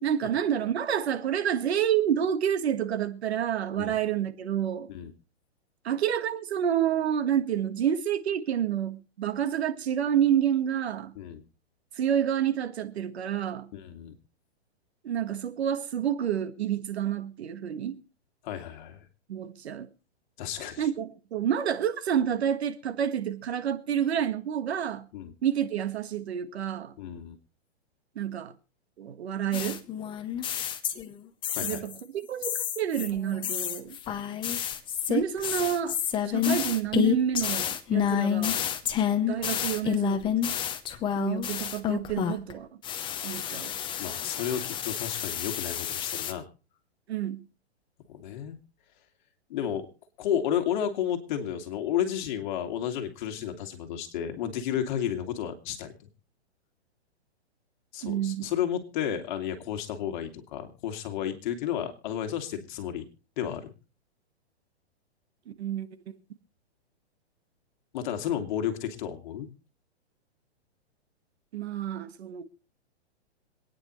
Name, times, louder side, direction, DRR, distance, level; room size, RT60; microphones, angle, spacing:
voice 1, 0.0-4.9 5.8-11.1 12.0-13.7 15.0-18.0 19.3-19.9 20.8-25.1 25.4-26.9 28.1-28.5 29.0-29.8 31.6-34.0 35.1-36.0 36.2-38.7 39.3-40.3 41.1-42.7 43.2-43.7 47.1-47.4 58.0-58.5 65.6-65.9 71.5-72.4, right 9 dB, 70° right, 1.7 m, -28 dB
voice 2, 13.7-14.1 18.4-19.0 20.4-20.9 25.1-25.3 27.0-27.4 31.5-31.9 44.0-46.5 48.1-48.6 49.5-49.9 50.2-55.9 57.9-63.1 63.4-63.7 67.9-69.5, left 9 dB, 45° left, 2.4 m, -32 dB
sound 1, 29.5-31.1 31.4-32.0 32.4-42.5 42.8-46.3, left 9 dB, 15° left, 0.8 m, -29 dB
26.0 x 9.6 x 3.2 m
hypercardioid pair, 145°, 33 cm